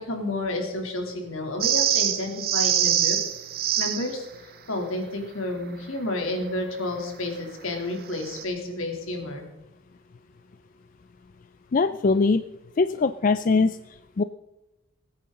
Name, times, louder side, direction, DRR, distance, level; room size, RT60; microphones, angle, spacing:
voice 1, 0.0-3.2 3.8-9.5, left 2 dB, 75° left, 2 dB, 3.0 m, -30 dB
sound 1, 1.6-4.1 8.2-8.4, right 10 dB, 45° right, 1.0 m, -24 dB
voice 2, 11.7-12.4 12.8-13.8 14.2-14.3, left 4 dB, 40° left, 11 dB, 0.4 m, -21 dB
22.0 x 9.5 x 3.8 m, 1.0 s
head